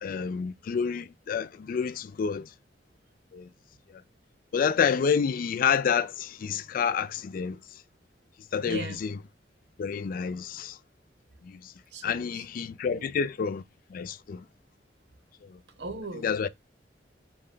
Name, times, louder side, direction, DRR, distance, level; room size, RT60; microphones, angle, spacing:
voice 1, 0.0-2.5 3.3-3.5 4.5-7.6 8.5-9.2 9.8-10.8 11.4-11.7 12.0-13.6 13.9-14.4 16.2-16.5, left 6 dB, 50° left, 0.3 m, -28 dB
voice 2, 8.6-9.0 11.9-12.5 12.9-13.1 15.8-16.3, right 2 dB, 70° right, 0.9 m, -38 dB
5.3 x 2.2 x 3.7 m
head